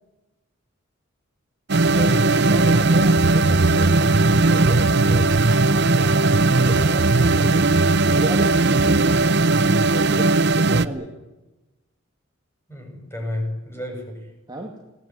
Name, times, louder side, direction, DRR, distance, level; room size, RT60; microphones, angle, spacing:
sound 1, 1.7-10.9, right 3 dB, 55° right, 0.9 m, -17 dB
voice 1, 1.9-2.5 12.7-14.2, left 1 dB, 10° left, 2 dB, 7.7 m, -31 dB
voice 2, 2.5-7.7 8.1-11.2 14.5-14.8, right 2 dB, 20° right, 0 dB, 2.3 m, -34 dB
21.5 x 18.5 x 9.4 m, 1.0 s
head